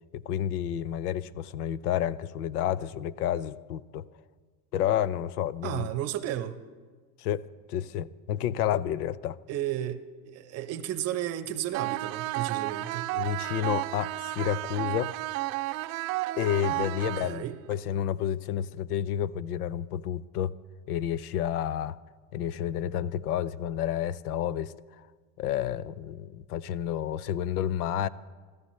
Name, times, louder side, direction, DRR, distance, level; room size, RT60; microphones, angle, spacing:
voice 1, 0.1-4.0 4.7-5.9 7.2-9.4 13.1-15.1 16.3-20.5 20.9-22.0 22.3-25.0 25.4-28.1, left 10 dB, 90° left, 18 dB, 0.7 m, -30 dB
voice 2, 5.6-6.6 9.5-13.1 17.0-17.6, right 12 dB, 35° right, 11 dB, 0.8 m, -33 dB
sound 1, 11.7-17.7, right 18 dB, 65° right, 0.6 m, -32 dB
27.0 x 14.0 x 3.2 m, 1.5 s
supercardioid pair, 145°, 44 cm